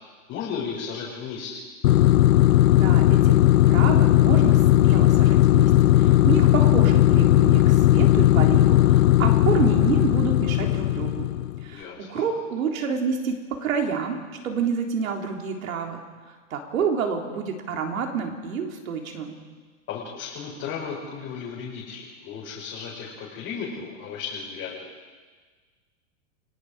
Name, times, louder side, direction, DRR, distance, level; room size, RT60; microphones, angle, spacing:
voice 1, 0.3-1.6 11.7-12.2 19.9-24.7, left 6 dB, 30° left, -6 dB, 4.8 m, -34 dB
sound 1, 1.8-11.6, left 14 dB, 75° left, 0.7 m, -17 dB
voice 2, 2.7-3.4 3.7-11.3 11.6-13.4 13.6-14.2 14.4-16.0 16.5-19.4, right 6 dB, 90° right, 2 dB, 3.8 m, -28 dB
29.5 x 17.5 x 5.0 m, 1.4 s
supercardioid pair, 155°, 40 cm